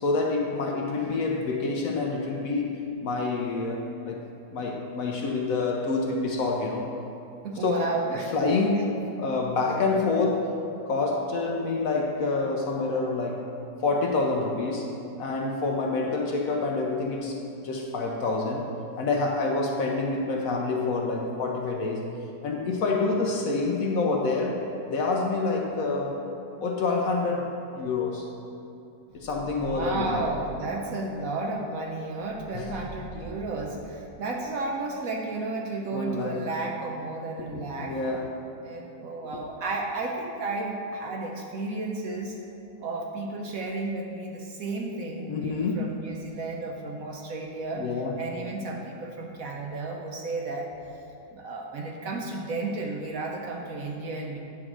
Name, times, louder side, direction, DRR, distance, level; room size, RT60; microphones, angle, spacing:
voice 1, 0.0-4.2 4.5-6.9 7.6-7.9 8.3-10.5 10.9-13.5 13.8-17.4 17.6-18.7 19.0-22.1 22.4-26.2 26.6-28.3 29.1-30.2 32.5-32.7 35.9-36.5 37.4-38.5 39.3-39.4 45.3-46.1 47.8-48.1, left 3 dB, 65° left, 0 dB, 1.0 m, -27 dB
voice 2, 7.4-8.6 29.5-38.0 38.6-42.4 42.8-47.8 48.2-50.7 51.3-54.4, right 3 dB, 65° right, 1 dB, 0.9 m, -33 dB
sound 1, 29.1-30.7 32.2-34.0, equal, 15° right, 0.4 m, -44 dB
8.9 x 3.8 x 6.0 m, 2.8 s
omnidirectional pair, 1.9 m